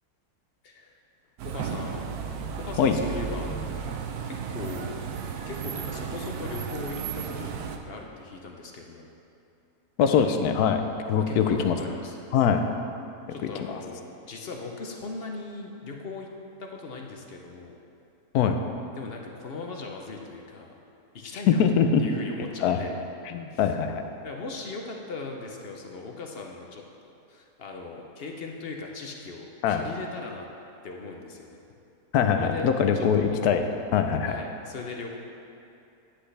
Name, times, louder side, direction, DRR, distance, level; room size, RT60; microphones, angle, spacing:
voice 1, 1.4-2.2 2.6-3.8 4.3-4.9 5.5-7.5 7.8-9.1 11.2-12.3 13.3-16.3 16.6-17.7 19.0-20.7 21.1-21.6 22.0-22.9 23.5-23.6 24.2-26.8 27.3-30.5 30.8-31.6 32.3-32.7 32.9-33.4 34.3-35.2, left 3 dB, 50° left, 1 dB, 0.8 m, -39 dB
sound 1, 1.4-7.8, right 7 dB, 85° right, 1.1 m, -34 dB
voice 2, 10.0-10.8 11.1-11.8 12.3-12.6 13.3-13.8 18.3-18.6 21.6-22.0 22.6-22.8 23.3-24.0 29.6-29.8 32.1-33.6 33.9-34.4, left 7 dB, 80° left, 6 dB, 1.1 m, -23 dB
9.8 x 7.9 x 3.3 m, 2.6 s
omnidirectional pair, 1.6 m